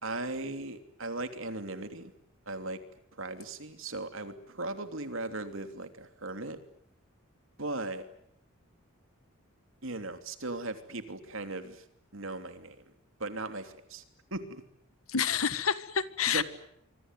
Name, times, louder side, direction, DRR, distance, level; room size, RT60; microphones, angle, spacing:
voice 1, 0.0-2.1 2.5-2.8 3.1-6.6 7.6-8.1 9.8-11.8 12.1-12.8 13.2-14.0 14.3-14.6 16.3-16.4, right 2 dB, 65° right, 8 dB, 3.1 m, -37 dB
voice 2, 15.1-16.4, left 7 dB, 85° left, 14 dB, 1.6 m, -28 dB
26.5 x 24.0 x 9.2 m, 0.73 s
head